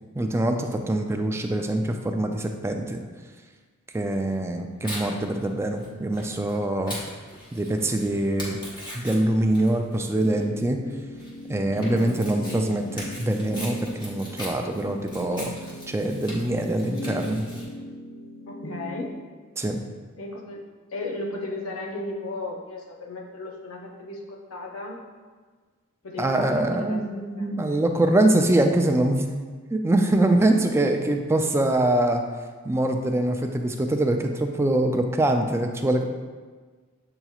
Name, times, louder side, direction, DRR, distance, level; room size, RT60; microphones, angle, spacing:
voice 1, 0.2-3.0 3.9-7.0 7.5-8.6 8.9-10.8 11.5-15.5 15.9-17.5 19.6-19.8 26.2-29.3 29.7-32.2 32.6-36.0, right 1 dB, 15° right, 4 dB, 0.3 m, -24 dB
Tearing, 4.1-17.6, equal, 20° left, 1.2 m, -41 dB
sound 1, 10.2-19.1, equal, 55° left, 0.7 m, -38 dB
voice 2, 18.5-19.1 20.2-20.6 20.9-25.0 26.0-27.9, left 2 dB, 90° left, -1 dB, 0.7 m, -35 dB
7.7 x 2.9 x 2.4 m, 1.4 s
head